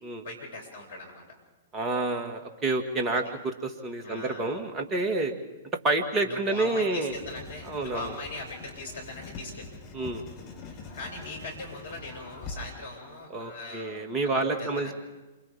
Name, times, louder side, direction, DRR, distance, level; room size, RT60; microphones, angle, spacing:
voice 1, 0.2-1.3 3.1-3.3 4.0-4.6 6.2-9.7 10.6-14.9, left 2 dB, 60° left, 0 dB, 7.0 m, -40 dB
voice 2, 1.7-5.3 5.8-7.1 7.7-8.1 9.9-10.3 13.3-14.9, right 2 dB, 20° right, 4 dB, 2.2 m, -29 dB
Writing, 7.1-12.7, left 3 dB, 35° left, 4.1 m, -44 dB
28.0 x 26.5 x 3.8 m, 1.2 s
figure-of-eight pair, 110°, 0 cm